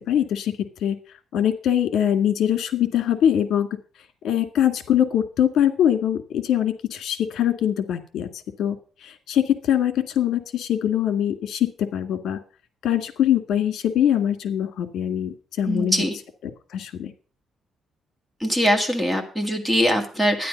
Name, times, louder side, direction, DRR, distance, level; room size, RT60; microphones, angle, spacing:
voice 1, 0.1-0.5 0.8-1.0 1.3-3.7 4.2-8.3 8.6-12.4 12.8-16.0 16.7-17.1, left 10 dB, 65° left, 8 dB, 1.9 m, -23 dB
voice 2, 15.6-16.2 18.4-20.5, equal, 5° right, 3 dB, 2.0 m, -22 dB
12.0 x 10.0 x 5.3 m, 0.41 s
cardioid pair, 150°, 0 cm